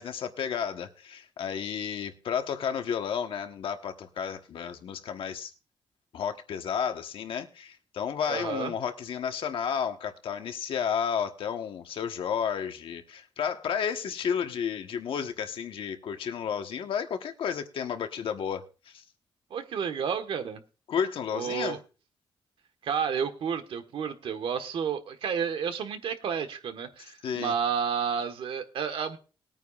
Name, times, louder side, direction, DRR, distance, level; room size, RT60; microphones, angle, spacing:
voice 1, 0.0-5.5 6.1-19.0 20.9-21.8 27.2-27.5, left 7 dB, 75° left, 1.2 m, -32 dB
voice 2, 8.3-8.7 19.5-20.6 21.3-21.8 22.8-29.2, right 7 dB, 80° right, 1.3 m, -31 dB
20.5 x 9.2 x 2.4 m
wide cardioid pair, 170°, 9 cm